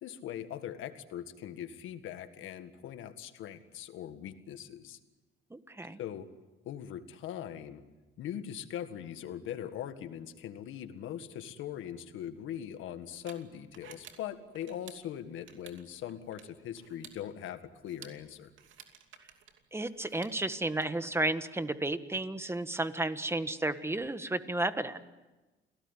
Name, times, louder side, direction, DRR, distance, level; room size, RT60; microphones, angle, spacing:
voice 1, 0.0-5.0 6.0-6.3 6.6-7.8 8.2-18.5, left 10 dB, 85° left, 9 dB, 1.8 m, -41 dB
voice 2, 5.5-6.0 19.7-25.0, right 2 dB, 10° right, 11 dB, 1.6 m, -32 dB
sound 1, 12.1-20.8, right 8 dB, 75° right, 2.8 m, -56 dB
28.5 x 18.0 x 9.9 m, 1.2 s
cardioid pair, 90°, 20 cm